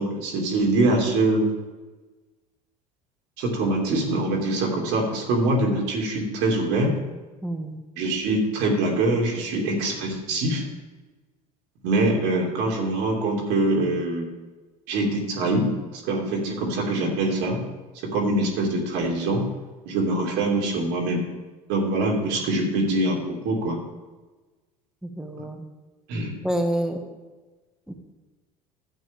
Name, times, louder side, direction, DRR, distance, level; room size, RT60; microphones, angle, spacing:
voice 1, 0.0-1.5 3.4-6.9 8.0-10.6 11.8-14.3 14.9-17.6 18.0-19.4 19.9-21.2 21.7-23.8 25.4-25.5 26.1-26.3, right 2 dB, 65° right, 0 dB, 2.5 m, -24 dB
voice 2, 7.4-7.8 25.0-25.7 26.4-27.0 27.9-28.0, right 1 dB, 5° right, 4 dB, 1.7 m, -28 dB
12.0 x 8.2 x 3.6 m, 1.2 s
hypercardioid pair, 75°, 20 cm